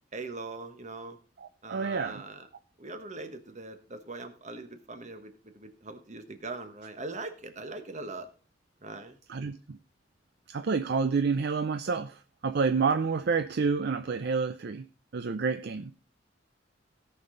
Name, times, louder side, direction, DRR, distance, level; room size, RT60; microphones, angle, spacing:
voice 1, 0.1-1.2 1.6-2.5 2.8-8.3 8.8-9.2, right 3 dB, 40° right, 1.3 m, -41 dB
voice 2, 1.4-2.2 9.3-9.8 10.5-14.8 15.1-15.9, right 5 dB, 60° right, 0.5 m, -29 dB
17.0 x 5.9 x 3.8 m
head